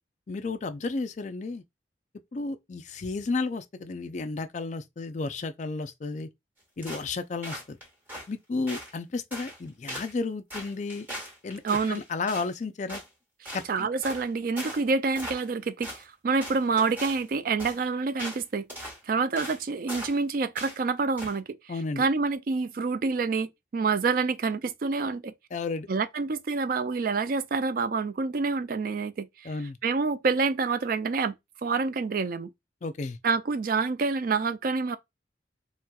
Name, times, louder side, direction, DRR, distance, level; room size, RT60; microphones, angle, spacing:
voice 1, 0.3-1.6 2.3-6.3 6.8-7.8 8.3-11.1 11.4-11.6 11.9-13.0 13.5-13.9 21.7-22.1 25.5-25.9 29.4-29.8 32.8-33.2, left 3 dB, 40° left, 0.4 m, -32 dB
sound 1, 6.8-7.1 7.4-8.3 8.7-8.9 9.3-9.6 9.9-10.1 10.5-12.5 12.9-13.1 13.4-13.7 14.0-14.3 14.6-14.8 15.1-15.6 15.8-16.0 16.4-17.2 17.6-17.8 18.2-18.4 18.7-19.0 19.4-19.6 19.9-20.2 20.6-20.8 21.2-21.4, equal, 10° right, 1.3 m, -39 dB
voice 2, 11.6-12.0 13.4-18.7 19.1-21.6 22.0-25.3 25.9-29.5 29.8-31.4 31.6-32.5 33.2-35.0, right 4 dB, 50° right, 0.3 m, -27 dB
4.1 x 2.2 x 2.3 m
head